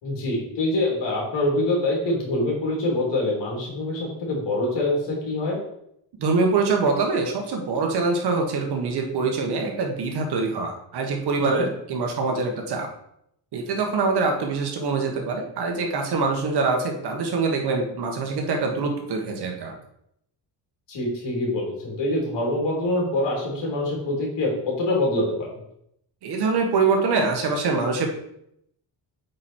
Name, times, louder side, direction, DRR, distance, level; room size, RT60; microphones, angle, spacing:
voice 1, 0.0-5.6 11.4-11.7 20.9-25.2, left 1 dB, 80° left, -2 dB, 3.3 m, -25 dB
voice 2, 6.2-12.9 13.5-19.7 26.2-28.1, right 4 dB, 65° right, 3 dB, 1.7 m, -24 dB
8.4 x 4.6 x 4.5 m, 0.75 s
cardioid pair, 155°, 43 cm